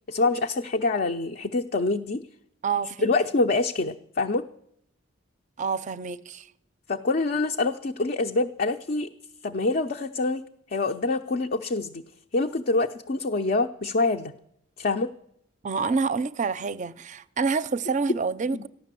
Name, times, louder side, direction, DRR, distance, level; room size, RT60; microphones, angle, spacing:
voice 1, 0.1-2.2 3.0-4.4 6.9-9.1 9.4-10.4 10.7-12.0 12.3-14.3 14.8-15.1 18.5-18.6, left 3 dB, 45° left, 0.5 m, -25 dB
voice 2, 2.6-3.1 5.6-6.5 15.6-18.7, right 5 dB, 35° right, 0.5 m, -27 dB
14.5 x 11.0 x 7.5 m
head